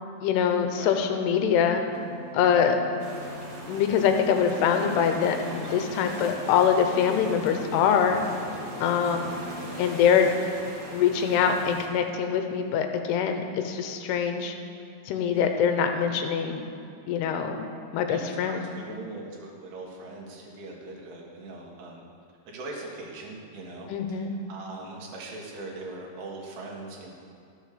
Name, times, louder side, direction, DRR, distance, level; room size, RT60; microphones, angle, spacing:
voice 1, 0.2-1.8 2.3-2.8 3.7-8.3 8.8-9.3 9.8-10.3 10.9-14.5 15.1-16.7 17.1-18.7 23.9-24.3, left 7 dB, 85° left, 5 dB, 2.9 m, -24 dB
sound 1, 1.7-9.7, right 1 dB, 25° left, 1.9 m, -44 dB
sound 2, 3.0-11.9, right 1 dB, 50° right, 1.8 m, -40 dB
voice 2, 18.1-22.0 22.5-27.1, right 2 dB, 75° right, -2 dB, 3.5 m, -41 dB
12.5 x 7.2 x 6.7 m, 2.4 s
omnidirectional pair, 4.6 m